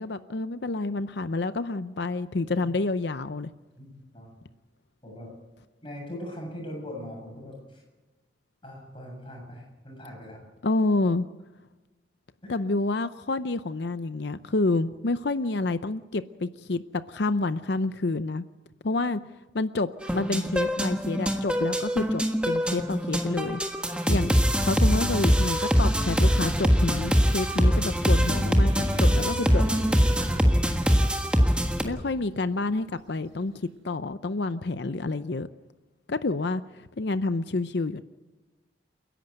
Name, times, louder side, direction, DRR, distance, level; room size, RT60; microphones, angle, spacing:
voice 1, 0.0-3.5 10.6-11.3 12.5-18.4 18.8-19.2 19.5-23.6 24.1-29.8 31.8-35.5 36.1-38.0, left 3 dB, 60° left, 12 dB, 0.6 m, -28 dB
voice 2, 3.8-4.3 5.0-5.3 5.8-7.8 8.6-10.4 12.4-12.6, left 1 dB, 25° left, 0 dB, 7.3 m, -41 dB
sound 1, 20.0-31.8, equal, 5° right, 1.4 m, -23 dB
sound 2, 26.4-33.5, right 1 dB, 70° right, 2.1 m, -42 dB
29.5 x 11.0 x 8.1 m, 1.2 s
head